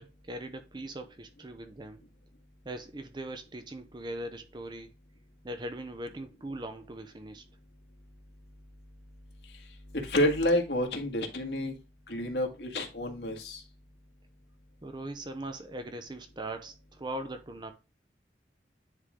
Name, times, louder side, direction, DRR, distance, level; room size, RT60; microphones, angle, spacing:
voice 1, 0.0-2.0 2.6-4.9 5.4-7.4 14.8-17.7, right 1 dB, 25° right, 0.6 m, -40 dB
voice 2, 9.9-11.8 12.1-13.6, left 1 dB, 75° left, 1.6 m, -29 dB
9.7 x 3.6 x 3.6 m
head